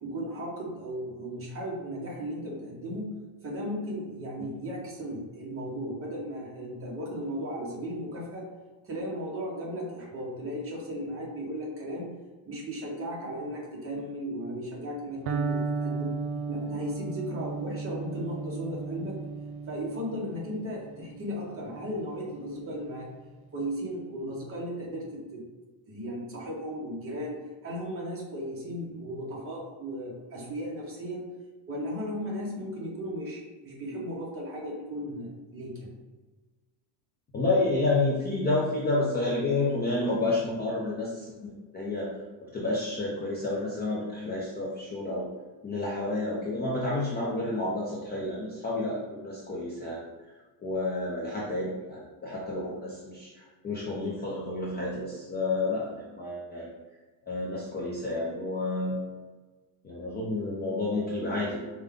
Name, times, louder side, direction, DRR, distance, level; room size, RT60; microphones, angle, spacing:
voice 1, 0.0-8.5 8.8-12.1 12.4-16.1 16.5-19.2 19.7-23.1 23.5-25.4 25.9-31.3 31.7-35.9, equal, 25° right, -2 dB, 0.9 m, -36 dB
Electric guitar, 15.3-23.1, right 4 dB, 70° right, 0.6 m, -35 dB
voice 2, 37.3-42.1 42.4-45.3 45.6-50.1 50.6-56.8 57.3-59.0 59.8-61.6, left 2 dB, 20° left, -5 dB, 0.4 m, -30 dB
5.1 x 2.2 x 3.6 m, 1.3 s
cardioid pair, 160°, 48 cm